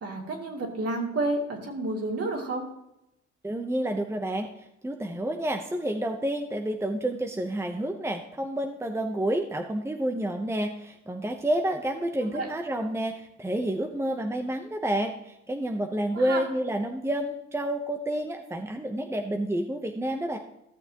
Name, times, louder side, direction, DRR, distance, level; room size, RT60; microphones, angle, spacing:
voice 1, 0.0-2.6 12.3-12.5 16.3-16.4, right 2 dB, 50° right, 0 dB, 2.7 m, -30 dB
voice 2, 3.4-4.5 4.8-20.4, right 1 dB, 10° right, 4 dB, 0.8 m, -29 dB
14.5 x 6.8 x 2.9 m, 0.83 s
cardioid pair, 90°, 30 cm